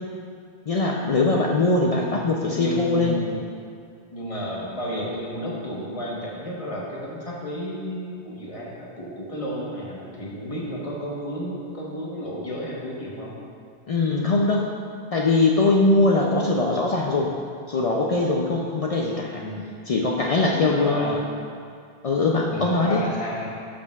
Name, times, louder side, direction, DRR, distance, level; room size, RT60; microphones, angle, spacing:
voice 1, 0.7-3.2 13.9-14.7 15.1-17.3 17.7-19.4 19.9-21.2 22.0-23.0, left 3 dB, 60° left, -1 dB, 0.3 m, -21 dB
voice 2, 2.4-3.6 4.1-13.4 19.3-19.7 20.4-21.1 22.5-23.5, equal, 30° left, -4 dB, 1.1 m, -32 dB
10.5 x 5.1 x 2.3 m, 2.3 s
omnidirectional pair, 1.1 m